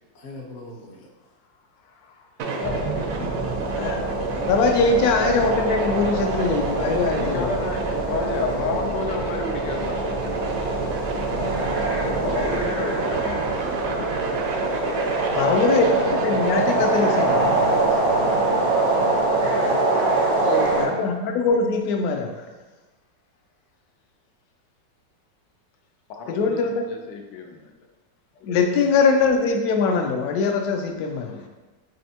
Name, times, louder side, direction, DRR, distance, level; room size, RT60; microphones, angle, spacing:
voice 1, 0.1-1.1 17.4-18.0 19.5-20.1, left 2 dB, 55° left, -1 dB, 0.5 m, -41 dB
voice 2, 1.9-2.3 2.6-3.6 7.1-10.2 12.2-13.4 14.0-14.1 18.5-18.9 20.3-21.0 26.1-27.7 28.4-28.6, left 4 dB, 90° left, 2 dB, 1.3 m, -32 dB
sound 1, 2.4-17.8, right 4 dB, 70° right, 0.8 m, -35 dB
sound 2, 2.4-20.8, right 2 dB, 90° right, 1.9 m, -24 dB
engine high, 2.6-17.1, right 2 dB, 25° right, 0.4 m, -35 dB
voice 3, 4.3-7.6 15.3-17.5 20.8-22.5 26.3-26.8 28.4-31.5, left 4 dB, 70° left, 4 dB, 0.9 m, -22 dB
5.4 x 3.3 x 2.8 m, 1.2 s
omnidirectional pair, 1.9 m